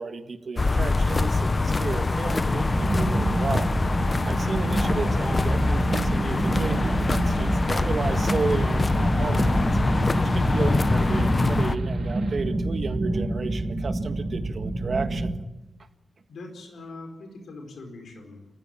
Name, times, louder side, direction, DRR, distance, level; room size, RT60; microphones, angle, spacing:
voice 1, 0.0-3.7 4.2-9.8 10.2-15.3, right 4 dB, 45° right, 8 dB, 1.7 m, -32 dB
sound 1, 0.6-11.8, left 3 dB, 30° left, 0.8 m, -24 dB
sound 2, 2.6-15.3, right 2 dB, 25° right, 2.3 m, -28 dB
sound 3, 3.7-12.4, right 4 dB, 75° right, 4.3 m, -47 dB
voice 2, 16.3-18.5, left 2 dB, 80° left, 4 dB, 4.7 m, -42 dB
29.5 x 15.0 x 9.0 m, 0.96 s
wide cardioid pair, 155°, 0 cm